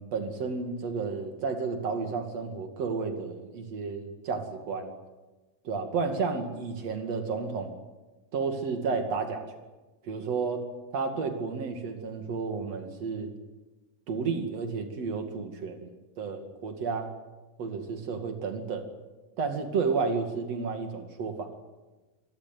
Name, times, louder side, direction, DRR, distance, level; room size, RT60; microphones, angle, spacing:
voice 1, 0.0-4.9 5.6-7.8 8.3-9.5 10.0-10.6 10.9-13.3 14.1-15.9 16.2-17.1 17.6-18.9 19.4-21.5, right 4 dB, 50° right, 5 dB, 3.4 m, -31 dB
26.5 x 15.5 x 9.4 m, 1.2 s
omnidirectional pair, 3.8 m